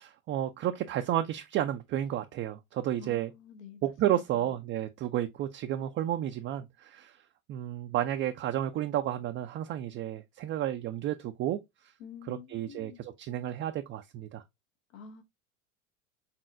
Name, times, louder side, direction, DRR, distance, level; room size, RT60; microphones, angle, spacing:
voice 1, 0.0-3.3 3.8-7.2 7.5-11.6 12.3-14.4, right 12 dB, 30° right, 0.4 m, -32 dB
voice 2, 3.0-4.6 12.0-13.0 14.9-15.2, left 6 dB, 75° left, 1.2 m, -49 dB
4.2 x 3.7 x 2.4 m
hypercardioid pair, 80°, 40 cm